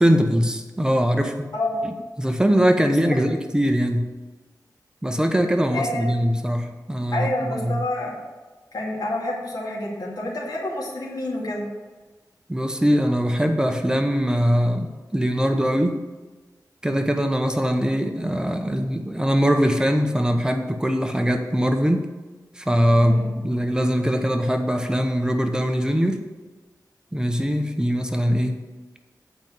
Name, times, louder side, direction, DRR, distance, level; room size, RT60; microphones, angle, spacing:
voice 1, 0.0-1.5 1.8-4.1 5.0-7.8 12.5-14.9 15.1-16.0 16.8-22.1 22.5-26.2 27.1-28.6, equal, 10° right, 5 dB, 0.9 m, -22 dB
voice 2, 1.5-1.8 5.7-6.1 7.1-8.2 8.7-11.7 23.0-23.3, left 1 dB, 70° left, -4 dB, 2.3 m, -28 dB
8.2 x 5.3 x 7.5 m, 1.3 s
wide cardioid pair, 80°, 7 cm